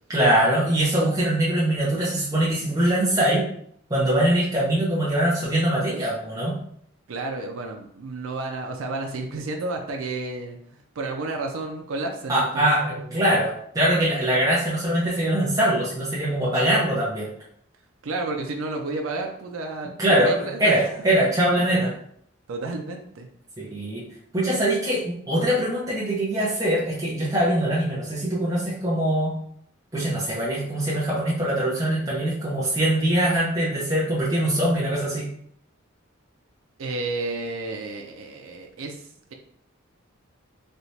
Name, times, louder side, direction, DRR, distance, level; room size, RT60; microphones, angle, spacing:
voice 1, 0.1-3.4 3.9-6.5 12.3-17.3 20.0-21.9 23.6-24.0 24.3-29.3 29.9-35.2, right 1 dB, 15° right, -7 dB, 0.7 m, -22 dB
voice 2, 7.1-10.6 11.0-13.1 18.0-20.9 21.6-21.8 22.5-23.3 36.8-39.0, right 2 dB, 70° right, 3 dB, 0.5 m, -31 dB
3.2 x 2.8 x 2.8 m, 0.66 s
head